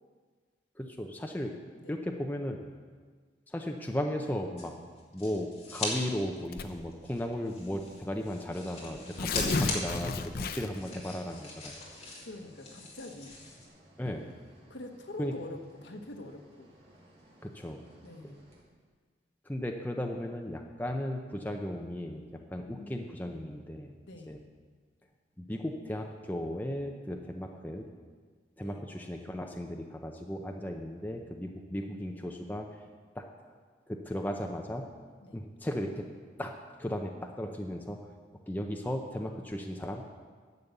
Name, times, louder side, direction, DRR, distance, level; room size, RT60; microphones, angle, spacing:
voice 1, 0.8-1.5 1.9-2.7 3.5-4.7 5.1-11.8 14.0-14.3 15.2-15.3 17.4-17.8 19.5-22.2 22.5-24.0 24.3-24.4 25.4-27.8 28.6-32.7 33.1-33.2 33.9-34.9 35.3-36.0 36.4-36.5 36.8-37.1 37.4-38.0 38.5-40.0, left 1 dB, 10° left, 2 dB, 0.6 m, -36 dB
sound 1, 4.6-6.0 6.3-13.7, left 3 dB, 35° left, 2.4 m, -41 dB
Tearing, 6.5-6.9 7.8-7.9 8.2-8.3 8.9-10.9, left 3 dB, 55° left, 0.6 m, -32 dB
sound 2, 8.6-18.6, right 1 dB, 35° right, 2.6 m, -59 dB
voice 2, 12.2-13.4 14.7-16.7 18.0-18.5 22.5-23.1 24.1-24.4 28.6-28.8 35.2-35.4, left 2 dB, 70° left, 4 dB, 1.2 m, -45 dB
11.0 x 7.0 x 8.1 m, 1.5 s
head